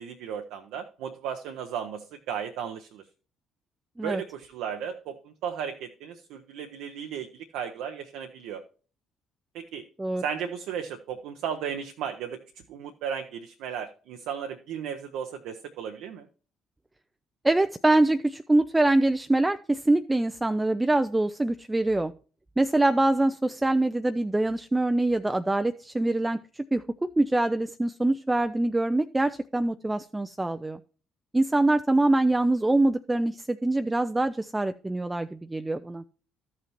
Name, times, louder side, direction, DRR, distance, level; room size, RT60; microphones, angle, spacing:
voice 1, 0.0-3.0 4.0-8.6 9.5-9.8 10.2-12.4 12.7-16.3, right 8 dB, 65° right, 5 dB, 0.7 m, -35 dB
voice 2, 17.4-22.1 22.6-30.8 31.3-36.0, right 2 dB, 15° right, 10 dB, 0.4 m, -24 dB
14.0 x 5.7 x 3.0 m, 0.38 s
figure-of-eight pair, 50°, 0 cm